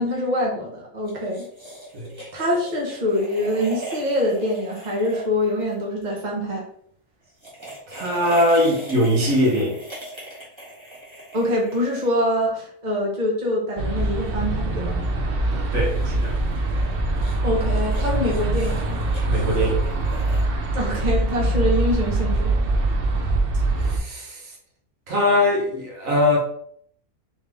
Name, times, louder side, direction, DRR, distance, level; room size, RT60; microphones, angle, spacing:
voice 1, 0.0-1.4 2.3-6.6 11.3-15.0 17.4-19.0 20.7-22.8, left 1 dB, 35° right, -2 dB, 1.1 m, -24 dB
sound 1, 1.0-6.2 7.2-12.4 15.6-20.4, right 1 dB, 20° right, 1.5 m, -40 dB
voice 2, 7.9-9.8 15.5-16.4 19.3-19.8 23.8-24.5 25.1-26.4, left 1 dB, 70° right, -2 dB, 1.5 m, -21 dB
sound 2, 13.8-24.0, right 2 dB, 50° right, 0.7 m, -23 dB
3.5 x 3.5 x 3.4 m, 0.62 s
omnidirectional pair, 1.5 m